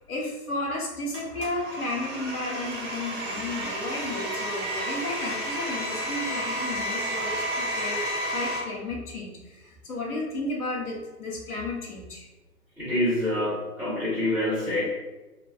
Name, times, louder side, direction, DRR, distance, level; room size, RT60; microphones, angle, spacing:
voice 1, 0.1-8.0 8.3-12.3, left 2 dB, 65° left, 0 dB, 1.0 m, -33 dB
Domestic sounds home sounds, 1.1-8.6, equal, 35° right, 0.9 m, -31 dB
voice 2, 12.8-14.8, left 1 dB, 5° right, -17 dB, 1.0 m, -26 dB
3.3 x 2.3 x 2.3 m, 1.1 s
figure-of-eight pair, 135°, 47 cm